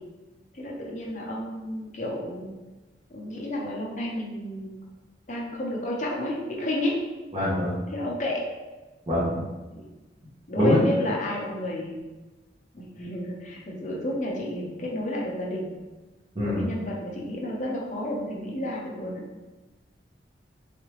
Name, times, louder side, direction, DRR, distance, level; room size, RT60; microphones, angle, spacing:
voice 1, 0.5-2.5 3.1-4.8 5.3-6.9 7.9-8.4 9.7-9.9 10.5-12.0 12.7-15.7 16.4-19.2, left 1 dB, 40° left, -2 dB, 0.6 m, -31 dB
voice 2, 7.3-7.7 9.1-9.4 10.6-10.8 16.3-16.7, equal, 25° right, -11 dB, 0.9 m, -24 dB
3.6 x 3.3 x 3.0 m, 1.2 s
head